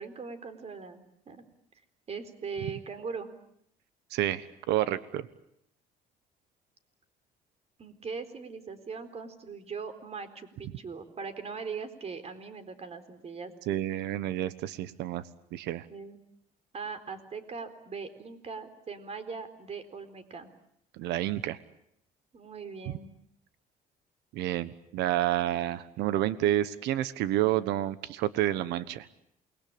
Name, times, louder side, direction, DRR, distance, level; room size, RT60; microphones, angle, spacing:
voice 1, 0.0-1.4 2.1-3.3 7.8-13.5 15.9-16.2 16.7-20.5 22.3-23.1, right 5 dB, 40° right, 10 dB, 4.2 m, -40 dB
voice 2, 4.1-5.3 13.7-15.2 15.5-15.8 20.9-21.6 24.3-29.1, right 13 dB, 85° right, 15 dB, 1.2 m, -29 dB
28.5 x 21.5 x 8.8 m, 0.72 s
cardioid pair, 110°, 17 cm